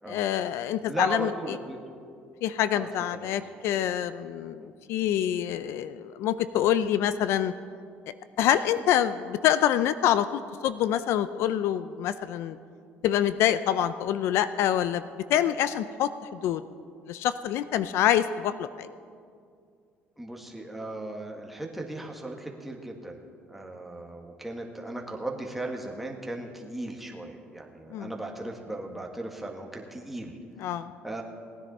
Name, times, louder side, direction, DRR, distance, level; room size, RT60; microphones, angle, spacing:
voice 1, 0.1-1.3 2.4-7.5 8.4-12.6 13.0-15.0 15.3-16.1 16.4-16.6 17.1-18.9 27.9-28.1 30.6-30.9, left 11 dB, 70° left, 14 dB, 0.4 m, -26 dB
voice 2, 0.9-1.8 2.7-3.4 4.6-4.7 20.2-23.2 23.5-31.2, right 2 dB, 5° right, 0 dB, 1.5 m, -37 dB
18.5 x 10.0 x 4.2 m, 2.3 s
cardioid pair, 110°, 5 cm